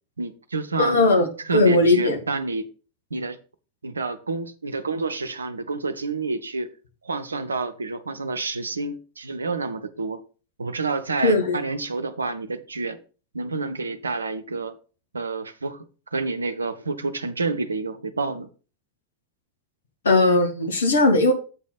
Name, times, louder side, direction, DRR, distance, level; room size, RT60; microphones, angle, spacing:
voice 1, 0.2-1.0 1.5-2.7 3.1-3.4 3.8-6.7 7.0-10.2 10.6-13.0 13.3-14.8 15.1-18.5, right 3 dB, 75° right, 0.8 m, -29 dB
voice 2, 0.8-2.2 11.2-11.6 20.0-21.3, left 2 dB, 70° left, 1.7 m, -18 dB
8.1 x 4.1 x 5.9 m
figure-of-eight pair, 90°, 0 cm